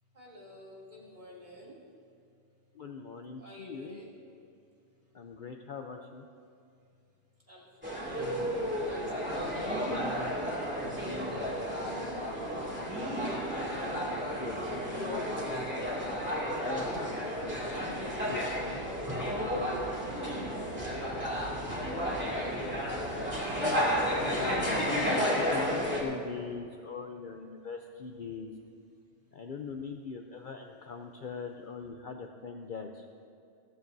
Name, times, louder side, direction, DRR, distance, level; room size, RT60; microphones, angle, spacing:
voice 1, 0.1-1.8 3.4-4.2 7.5-8.4 8.8-9.9 14.5-15.1 19.1-19.4 20.2-20.6 24.3-25.2, equal, 35° right, -6 dB, 2.9 m, -47 dB
voice 2, 2.7-4.0 5.1-6.2 10.8-12.3 14.4-14.6 15.0-15.3 16.6-17.1 17.7-18.8 19.5-19.9 23.6-28.5 29.3-33.0, left 5 dB, 50° left, 4 dB, 0.6 m, -41 dB
sound 1, 7.8-26.0, equal, 10° right, 2.4 m, -32 dB
sound 2, 16.3-25.1, right 2 dB, 50° right, 1.1 m, -50 dB
16.5 x 14.0 x 2.7 m, 2.5 s
omnidirectional pair, 1.3 m